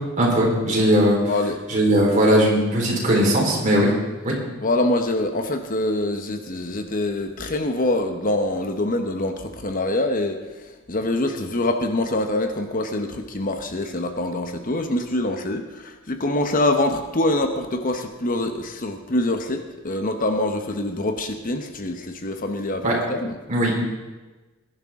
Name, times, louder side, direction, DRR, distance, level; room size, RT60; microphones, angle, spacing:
voice 1, 0.2-1.2 1.7-3.9 4.2-4.3 22.8-23.0 23.5-23.8, equal, 40° right, -3 dB, 4.2 m, -19 dB
voice 2, 1.3-1.6 4.6-23.3, left 1 dB, 40° left, 6 dB, 1.0 m, -25 dB
21.0 x 11.5 x 3.7 m, 1.2 s
head